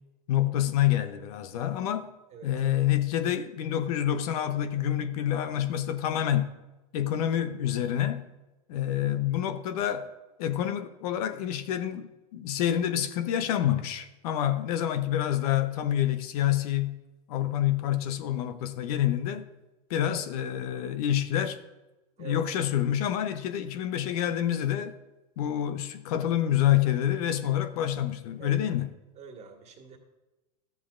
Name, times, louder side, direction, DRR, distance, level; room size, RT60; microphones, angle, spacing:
voice 1, 0.3-2.1 2.4-6.5 6.9-8.2 8.7-10.1 10.4-17.0 17.3-19.4 19.9-21.6 22.2-24.9 25.4-28.9, left 11 dB, 65° left, 0.7 m, -27 dB
voice 2, 29.2-30.0, right 6 dB, 35° right, 1.6 m, -45 dB
13.0 x 8.4 x 2.5 m
hypercardioid pair, 110°, 21 cm